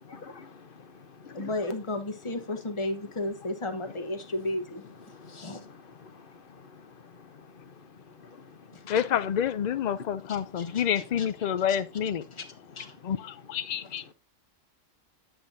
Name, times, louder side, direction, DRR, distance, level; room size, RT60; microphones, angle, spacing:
voice 1, 0.0-1.5 3.9-4.3 5.1-8.9 10.5-11.0 12.3-12.4 12.9-13.1, left 5 dB, 45° left, 1.0 m, -49 dB
voice 2, 1.3-4.8 5.3-5.6 8.7-8.8 10.6-11.3 12.3-12.4 12.7-13.0, left 2 dB, 25° left, 1.0 m, -33 dB
voice 3, 8.9-12.2 13.0-14.1, left 9 dB, 85° left, 0.3 m, -28 dB
8.7 x 7.8 x 2.7 m
omnidirectional pair, 1.3 m